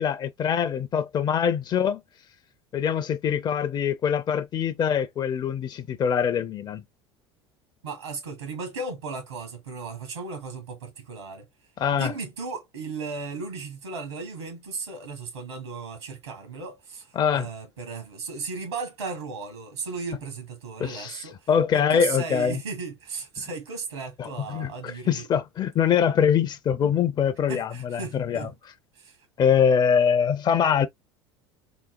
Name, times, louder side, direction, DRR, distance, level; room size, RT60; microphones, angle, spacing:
voice 1, 0.0-2.0 2.7-6.8 11.8-12.1 17.2-17.5 20.8-22.6 24.2-28.5 29.4-30.9, left 7 dB, 30° left, 0.5 m, -24 dB
voice 2, 7.8-11.5 11.9-25.3 27.5-28.5 29.0-29.2, right 4 dB, 75° right, 1.5 m, -36 dB
4.1 x 2.0 x 2.3 m
figure-of-eight pair, 70°, 14 cm